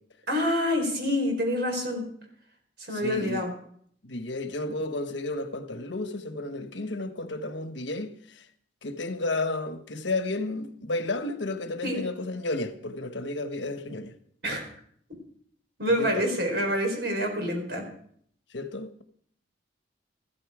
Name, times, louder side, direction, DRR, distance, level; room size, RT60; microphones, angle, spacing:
voice 1, 0.3-2.0 2.8-3.5 11.8-12.0 14.4-14.6 15.8-17.8, equal, 65° right, 4.3 m, -27 dB
voice 2, 2.9-3.5 4.0-8.4 8.8-14.1 16.0-16.2 18.5-19.0, left 2 dB, 85° left, 1.2 m, -32 dB
14.0 x 13.0 x 5.0 m
head